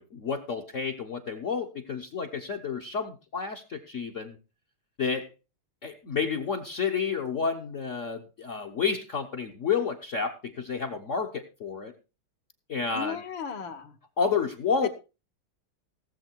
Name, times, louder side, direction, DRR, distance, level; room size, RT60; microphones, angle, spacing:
voice 1, 0.0-4.4 5.0-5.3 5.8-11.9 12.7-13.2 14.2-14.9, left 5 dB, 45° left, 8 dB, 1.1 m, -30 dB
voice 2, 12.9-14.0 14.8-14.9, left 7 dB, 65° left, 6 dB, 1.9 m, -35 dB
17.0 x 7.4 x 4.5 m, 0.30 s
omnidirectional pair, 2.3 m